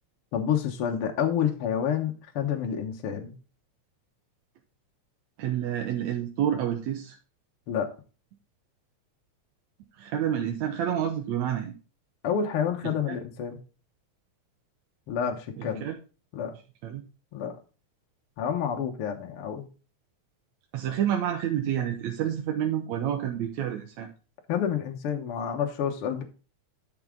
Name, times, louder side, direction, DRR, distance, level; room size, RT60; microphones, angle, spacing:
voice 1, 0.3-3.3 7.7-7.9 12.2-13.6 15.1-15.8 16.3-16.5 17.3-17.5 18.4-19.6 24.5-26.2, left 8 dB, 60° left, 2 dB, 1.7 m, -28 dB
voice 2, 5.4-7.2 9.9-11.8 12.8-13.2 15.6-16.0 16.8-17.0 20.7-24.1, right 10 dB, 75° right, 3 dB, 2.1 m, -29 dB
11.0 x 6.0 x 3.7 m, 0.35 s
omnidirectional pair, 3.3 m